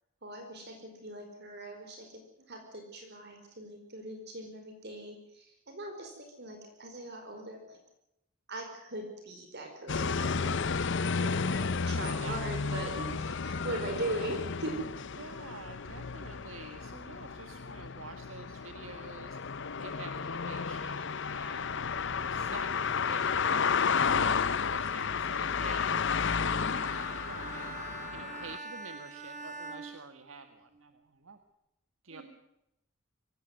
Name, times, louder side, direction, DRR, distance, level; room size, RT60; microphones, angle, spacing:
voice 1, 0.2-7.8 8.5-10.7 11.2-14.8 24.1-24.4 32.1-32.2, right 1 dB, 50° right, 4 dB, 4.8 m, -40 dB
sound 1, 9.9-28.6, left 5 dB, 55° left, 0.8 m, -32 dB
voice 2, 15.2-19.4 19.8-23.7 24.2-27.7 28.1-31.4 32.0-32.2, right 4 dB, 65° right, 7 dB, 1.7 m, -49 dB
Bowed string instrument, 26.3-30.8, right 3 dB, 35° right, 3.8 m, -44 dB
24.5 x 18.0 x 7.9 m, 0.83 s
head